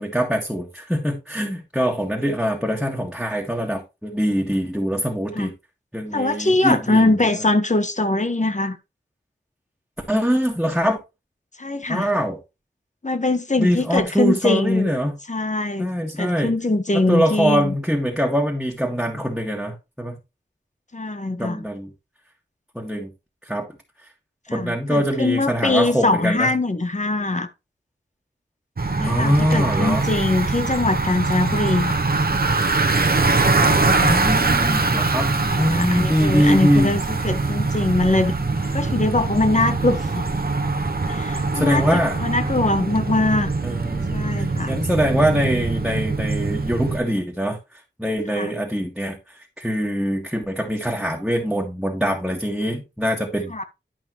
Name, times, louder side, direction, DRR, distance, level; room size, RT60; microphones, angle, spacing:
voice 1, 0.0-5.5 5.9-7.1 10.1-11.0 11.9-12.4 13.6-15.2 15.8-16.6 16.9-20.2 21.4-21.9 22.8-23.1 23.4-23.7 24.5-26.5 29.0-30.1 34.0-36.9 41.5-42.2 42.4-42.6 43.6-53.6, equal, ahead, 1.8 m, -23 dB
voice 2, 6.1-8.8 11.6-12.1 13.0-14.9 15.3-15.9 16.2-17.7 20.9-21.6 24.5-27.5 28.8-32.0 33.8-34.2 35.4-37.0 37.2-38.3 38.7-40.3 41.1-43.5 44.1-44.7 48.3-48.5 53.5-53.6, left 2 dB, 40° left, 1.3 m, -22 dB
Bicycle, 28.8-47.0, right 3 dB, 50° right, 1.1 m, -22 dB
11.5 x 5.4 x 3.1 m
wide cardioid pair, 50°, 19 cm